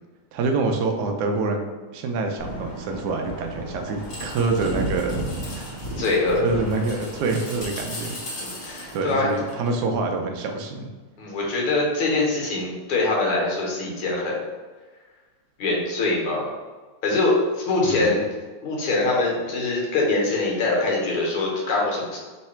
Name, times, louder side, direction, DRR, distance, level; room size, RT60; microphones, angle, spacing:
voice 1, 0.3-1.6 1.9-5.2 5.5-5.7 6.3-8.2 8.9-10.9 17.8-18.1, right 3 dB, 80° right, 3 dB, 0.9 m, -26 dB
sound 1, 2.4-9.8, equal, 50° left, 1.4 m, -34 dB
voice 2, 6.0-6.5 8.4-9.3 11.2-14.4 15.6-16.5 17.0-17.4 17.7-18.3 18.6-22.2, left 2 dB, 85° left, -2 dB, 2.0 m, -23 dB
3.7 x 3.2 x 4.3 m, 1.3 s
omnidirectional pair, 2.4 m